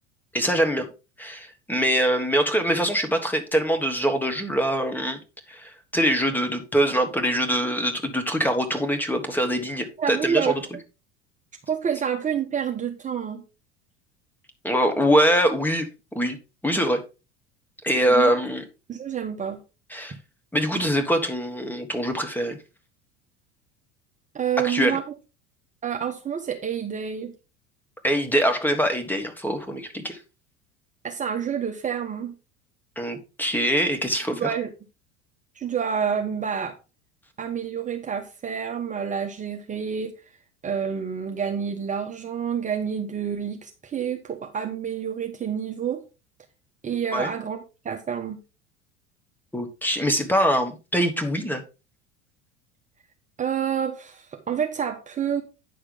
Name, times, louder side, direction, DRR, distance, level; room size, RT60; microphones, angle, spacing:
voice 1, 0.3-0.9 1.2-5.2 5.5-10.5 14.6-15.9 16.1-16.4 16.6-17.0 17.8-18.6 19.9-20.1 20.5-22.6 24.6-25.0 28.0-30.2 32.9-34.5 47.1-47.3 49.5-51.6, equal, 5° left, 1.5 m, -23 dB
voice 2, 10.0-10.6 11.7-13.4 18.1-18.3 18.9-19.6 24.3-25.0 25.8-27.3 31.0-32.3 34.4-34.7 35.5-36.7 37.4-40.1 40.6-46.0 46.8-48.4 53.4-55.4, right 7 dB, 20° right, 1.2 m, -28 dB
9.4 x 6.5 x 3.6 m
figure-of-eight pair, 75°, 35 cm